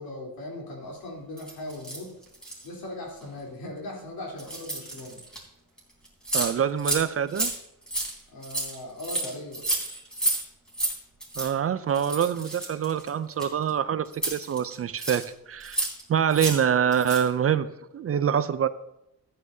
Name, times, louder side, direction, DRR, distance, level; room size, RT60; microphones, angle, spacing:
voice 1, 0.0-2.2 2.6-5.2 8.3-9.7, left 1 dB, 80° left, -2 dB, 3.4 m, -39 dB
sound 1, 1.4-2.7 3.2-3.4 4.4-5.4 5.8-5.9 6.1-6.5 6.8-7.0 7.3-10.4 10.7-10.9 11.2-11.5 11.9-13.7 14.1-15.3 15.6-16.0 16.3-16.6 16.9-17.3, right 1 dB, ahead, 3.4 m, -30 dB
voice 2, 6.3-7.5 11.4-18.7, right 8 dB, 40° right, 14 dB, 0.4 m, -25 dB
14.5 x 9.3 x 2.7 m, 0.84 s
wide cardioid pair, 135°, 36 cm